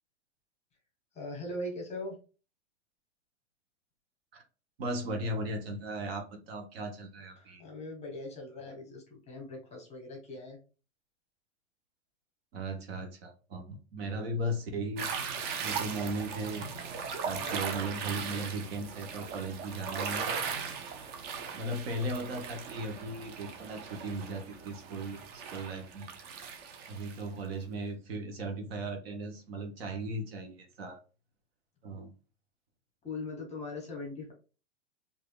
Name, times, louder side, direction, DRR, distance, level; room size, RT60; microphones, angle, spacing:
voice 1, 1.1-2.2 7.4-10.6 17.3-17.6 33.0-34.3, left 2 dB, 20° left, 1 dB, 1.2 m, -40 dB
voice 2, 4.8-7.6 12.5-15.3 15.6-16.7 17.3-20.4 21.5-26.1 26.9-31.0 31.8-32.1, right 1 dB, 55° right, 3 dB, 1.0 m, -37 dB
sound 1, 15.0-27.2, right 6 dB, 30° right, 0.6 m, -38 dB
4.7 x 2.7 x 2.3 m, 0.35 s
hypercardioid pair, 105°, 35 cm